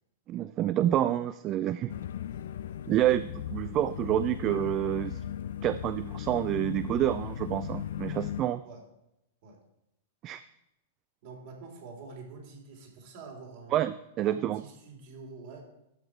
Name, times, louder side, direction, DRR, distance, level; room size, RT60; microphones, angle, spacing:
voice 1, 0.3-1.9 2.9-5.2 5.6-8.6 10.2-10.4 13.7-14.6, right 12 dB, 30° right, 14 dB, 0.3 m, -28 dB
sound 1, 1.9-8.4, left 10 dB, 60° left, 0.4 m, -37 dB
voice 2, 11.2-13.8 14.2-15.6, right 4 dB, 50° right, 1 dB, 3.1 m, -47 dB
13.0 x 5.8 x 4.8 m, 0.86 s
figure-of-eight pair, 100°, 0 cm